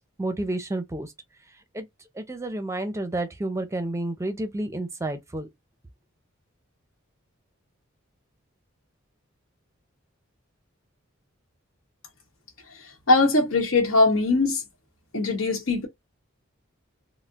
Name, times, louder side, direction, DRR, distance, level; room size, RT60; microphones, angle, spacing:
voice 1, 0.2-1.1 1.7-1.9 2.2-5.5, right 2 dB, 15° right, 0.5 m, -30 dB
voice 2, 13.1-14.6 15.1-15.9, left 2 dB, 75° left, 1.1 m, -21 dB
4.2 x 2.0 x 2.4 m
head